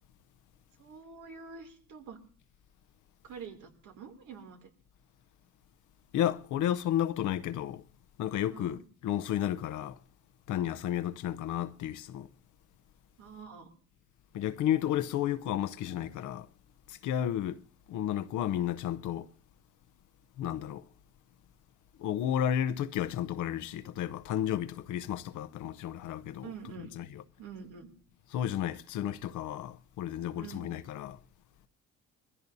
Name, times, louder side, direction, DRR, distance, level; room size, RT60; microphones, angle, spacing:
voice 1, 0.8-2.2 3.2-4.7 8.5-8.8 13.2-13.7 26.4-27.1 27.4-27.9 30.4-30.7, right 6 dB, 80° right, 2.8 m, -46 dB
voice 2, 6.1-7.8 8.2-10.0 10.5-12.3 14.3-16.5 16.9-17.6 17.9-19.3 20.4-20.9 22.0-26.5 27.0-27.2 28.3-31.2, left 11 dB, 85° left, 0.8 m, -32 dB
22.5 x 15.0 x 2.7 m
cardioid pair, 90°, 30 cm